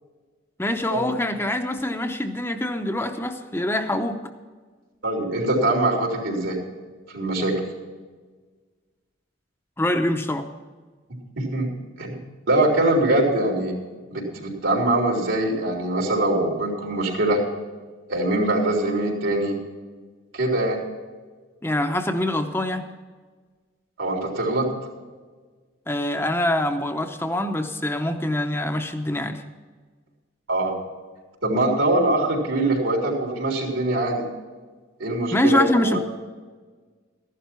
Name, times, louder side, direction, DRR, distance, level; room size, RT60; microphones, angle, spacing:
voice 1, 0.6-4.2 9.8-10.5 21.6-22.9 25.9-29.4 35.3-36.0, left 1 dB, 10° left, 5 dB, 0.7 m, -24 dB
voice 2, 5.0-6.6 7.1-7.6 11.4-11.7 12.0-12.2 12.5-13.7 14.1-17.4 18.1-19.6 20.3-20.8 24.0-24.7 30.5-30.8 31.4-34.2 35.0-36.0, right 1 dB, 80° right, 0 dB, 4.0 m, -23 dB
14.5 x 11.5 x 4.5 m, 1.4 s
head